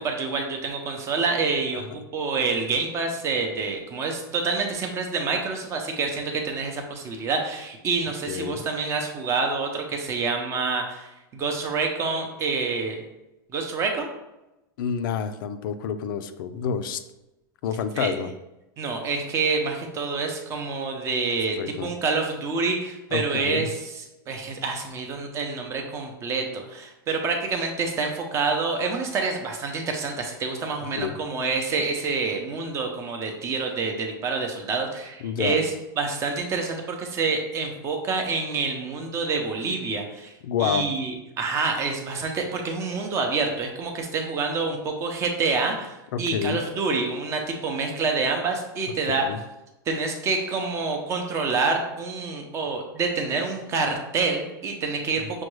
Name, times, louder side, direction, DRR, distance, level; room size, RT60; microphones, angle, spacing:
voice 1, 0.0-13.0 13.5-14.1 18.0-18.1 18.8-23.7 24.3-35.7 36.0-40.3 40.6-49.3 49.9-55.2, right 4 dB, 25° right, 3 dB, 0.6 m, -27 dB
voice 2, 8.3-8.6 14.8-17.0 17.6-18.3 21.6-21.9 23.1-23.7 31.0-31.1 35.2-35.6 40.4-40.9 46.1-46.6 49.1-49.4 55.2-55.3, left 7 dB, 70° left, 10 dB, 0.4 m, -28 dB
6.1 x 2.3 x 3.1 m, 0.97 s
supercardioid pair, 155°, 12 cm